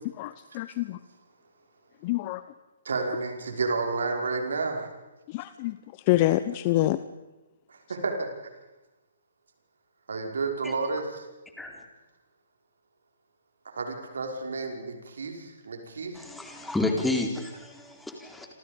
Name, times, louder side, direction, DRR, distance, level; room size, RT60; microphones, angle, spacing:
voice 1, 0.2-1.0 2.0-2.4 5.3-5.8 6.1-7.0, left 15 dB, 35° left, 13 dB, 0.9 m, -26 dB
voice 2, 2.8-4.9 7.7-8.3 10.1-11.3 13.7-16.2, right 4 dB, 70° right, 3 dB, 5.6 m, -31 dB
voice 3, 16.1-18.5, left 2 dB, 5° left, 2 dB, 4.1 m, -30 dB
28.0 x 27.0 x 5.4 m, 1.1 s
figure-of-eight pair, 130°, 0 cm